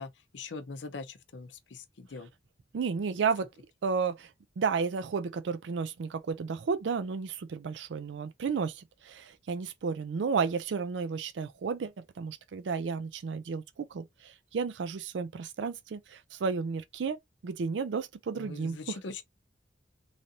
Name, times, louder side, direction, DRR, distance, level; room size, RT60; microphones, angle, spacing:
voice 1, 0.0-2.3 18.3-19.2, left 4 dB, 75° left, 0.6 m, -42 dB
voice 2, 2.7-3.5 3.8-4.3 4.6-19.0, right 5 dB, 75° right, 0.4 m, -32 dB
3.2 x 2.6 x 2.7 m
head